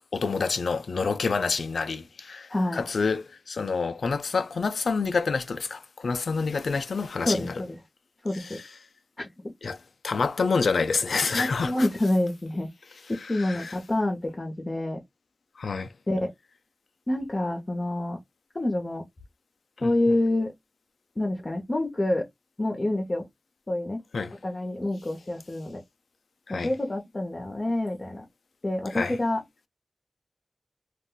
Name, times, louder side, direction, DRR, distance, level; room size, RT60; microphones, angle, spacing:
voice 1, 0.1-7.6 8.3-8.7 9.6-9.8 10.0-11.9 13.1-13.8 15.6-15.9 19.8-19.9 24.1-24.4 26.5-26.7 28.9-29.2, left 4 dB, 85° left, 0.3 m, -28 dB
voice 2, 2.5-2.8 7.3-7.8 8.2-8.6 9.2-9.3 11.3-12.7 13.1-15.0 16.1-16.3 17.1-18.2 18.5-19.0 19.8-20.5 21.2-22.3 22.6-23.2 23.7-24.0 24.4-25.8 26.5-28.2 28.6-29.4, left 1 dB, 35° left, 0.7 m, -27 dB
2.4 x 2.2 x 3.7 m
wide cardioid pair, 90°, 0 cm